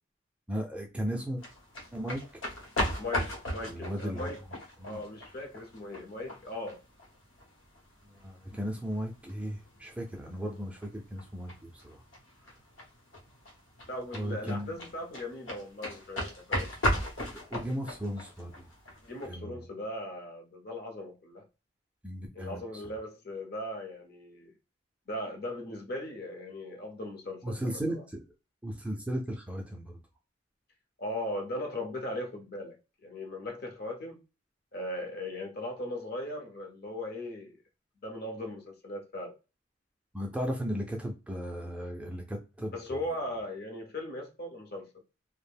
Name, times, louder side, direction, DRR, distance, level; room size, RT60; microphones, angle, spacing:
voice 1, 0.5-1.4 1.9-2.4 3.6-4.3 4.8-5.0 8.1-12.0 14.1-14.8 17.5-18.7 19.3-19.7 22.0-22.6 27.4-28.2 28.6-30.0 40.1-43.1, equal, 5° right, 0.4 m, -36 dB
sound 1, 1.4-19.3, equal, 75° left, 0.9 m, -37 dB
voice 2, 3.0-4.4 4.8-6.8 13.9-16.7 19.0-21.5 22.3-24.6 25.1-28.0 31.0-34.2 34.7-37.6 38.0-39.4 42.7-44.9, left 1 dB, 50° left, 0.7 m, -38 dB
2.4 x 2.1 x 3.3 m
head